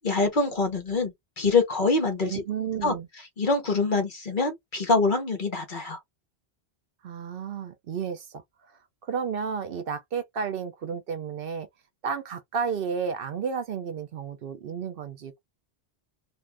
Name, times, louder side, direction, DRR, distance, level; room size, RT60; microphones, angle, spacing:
voice 1, 0.0-2.4 2.8-2.9 3.4-6.0, left 3 dB, 50° left, 1.1 m, -25 dB
voice 2, 2.2-3.1 7.0-8.4 9.0-11.7 12.0-15.4, right 6 dB, 65° right, 0.7 m, -32 dB
2.5 x 2.5 x 3.2 m
omnidirectional pair, 1.1 m